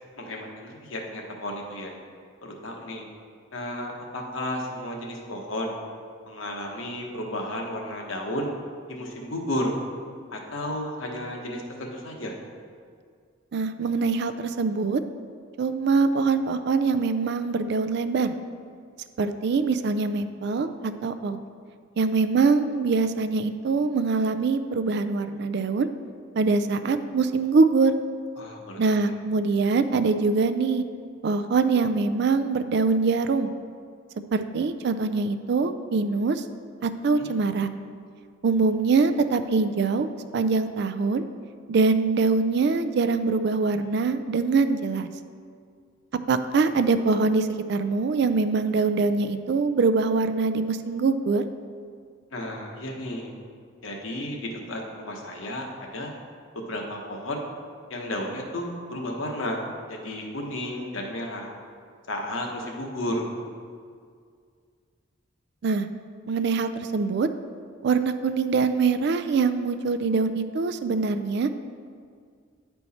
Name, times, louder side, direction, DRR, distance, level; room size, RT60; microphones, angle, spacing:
voice 1, 0.2-2.0 2.4-3.0 3.5-5.7 6.2-8.5 8.9-9.7 10.3-12.3 28.4-29.0 37.1-37.3 52.3-53.3 53.8-56.1 56.5-57.5 57.9-59.6 59.9-61.5 62.1-63.2, left 1 dB, 75° left, 0 dB, 1.1 m, -33 dB
voice 2, 13.5-15.0 15.6-18.3 19.2-21.4 22.0-25.9 26.4-27.9 28.8-30.8 31.2-33.5 34.3-36.4 36.8-37.7 38.4-41.3 41.7-45.1 46.3-51.4 65.6-65.9 66.3-67.3 67.8-71.5, right 4 dB, 55° right, 10 dB, 0.3 m, -23 dB
9.7 x 4.5 x 4.1 m, 2.1 s
head